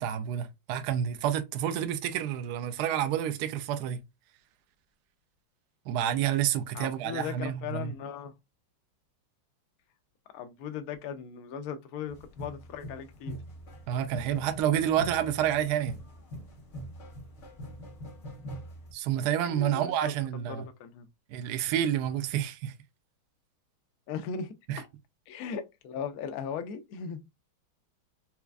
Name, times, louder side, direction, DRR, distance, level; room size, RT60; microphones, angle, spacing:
voice 1, 0.0-4.0 5.9-7.9 13.9-16.0 18.9-20.7 21.3-22.7 24.7-24.8, right 10 dB, 80° right, 0.9 m, -29 dB
voice 2, 6.7-8.3 10.3-13.4 19.4-21.1 24.1-24.9 25.3-27.3, left 7 dB, 75° left, 0.8 m, -38 dB
sound 1, 12.1-18.9, equal, 45° left, 1.2 m, -43 dB
4.4 x 2.4 x 2.3 m
omnidirectional pair, 2.2 m